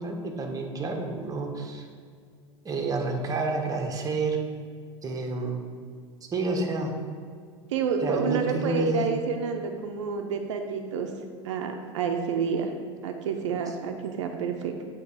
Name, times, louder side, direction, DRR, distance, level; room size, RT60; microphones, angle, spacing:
voice 1, 0.0-1.9 2.6-4.4 5.0-5.6 6.3-6.9 8.0-9.1, right 3 dB, 25° right, 2 dB, 1.0 m, -29 dB
voice 2, 7.7-11.1 11.4-12.7 13.0-14.7, right 6 dB, 75° right, 5 dB, 0.5 m, -29 dB
7.9 x 2.9 x 4.7 m, 2.1 s
hypercardioid pair, 95°, 15 cm